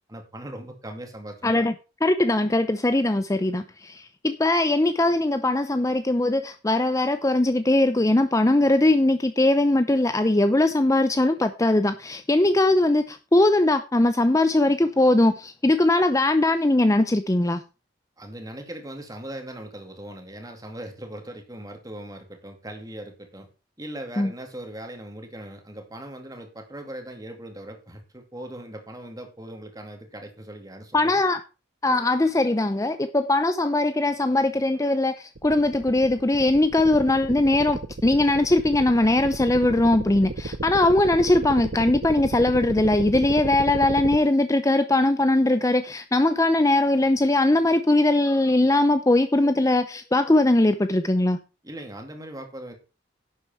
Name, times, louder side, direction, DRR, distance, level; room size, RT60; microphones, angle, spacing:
voice 1, 0.1-1.7 18.2-23.5 23.8-31.1 51.6-52.7, right 1 dB, 20° right, 2.4 m, -39 dB
voice 2, 1.4-1.7 2.0-17.6 24.2-24.3 30.9-31.4 31.8-51.4, left 2 dB, 15° left, 0.5 m, -20 dB
sound 1, 35.4-44.2, right 2 dB, 60° right, 0.8 m, -33 dB
11.0 x 8.1 x 4.4 m
head